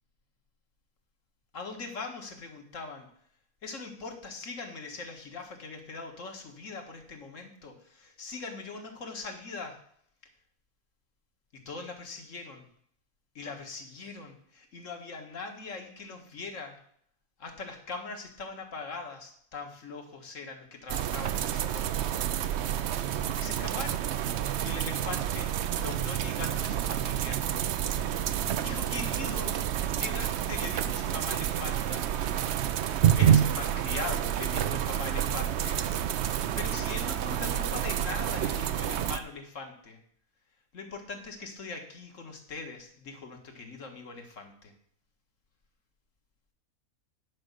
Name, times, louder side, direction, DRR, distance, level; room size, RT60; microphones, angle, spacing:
voice 1, 1.5-3.1 3.6-9.8 11.5-12.7 13.4-16.8 17.4-22.2 23.4-24.1 24.6-27.4 28.6-29.6 30.0-32.1 33.1-35.8 36.6-40.0 40.7-44.7, left 4 dB, 60° left, 4 dB, 1.9 m, -41 dB
sound 1, 20.9-39.2, right 10 dB, 60° right, 0.8 m, -29 dB
10.5 x 5.2 x 6.7 m, 0.64 s
omnidirectional pair, 1.5 m